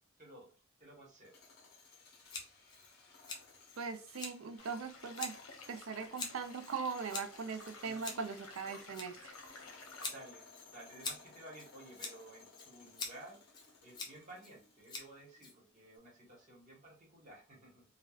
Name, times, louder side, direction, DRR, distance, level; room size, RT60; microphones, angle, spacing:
voice 1, 0.2-0.5 0.8-1.4 7.8-8.4 10.0-17.8, right 1 dB, 35° right, 1.2 m, -55 dB
sound 1, 1.1-15.3, left 4 dB, 50° left, 0.9 m, -60 dB
Scissors, 2.3-16.0, left 3 dB, 20° left, 0.5 m, -47 dB
voice 2, 3.8-5.4 5.7-9.3, right 5 dB, 65° right, 0.4 m, -40 dB
sound 2, 4.6-10.1, left 3 dB, 75° left, 0.8 m, -54 dB
3.3 x 2.3 x 2.3 m
head